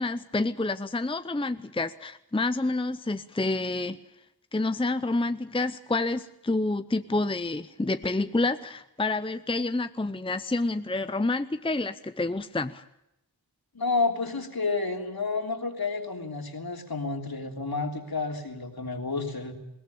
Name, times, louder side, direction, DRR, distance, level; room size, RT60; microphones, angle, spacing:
voice 1, 0.0-4.0 4.5-12.8, left 2 dB, 15° left, 12 dB, 0.7 m, -28 dB
voice 2, 13.7-19.5, left 3 dB, 65° left, 3 dB, 3.2 m, -30 dB
21.0 x 17.5 x 8.7 m, 0.87 s
wide cardioid pair, 50°, 40 cm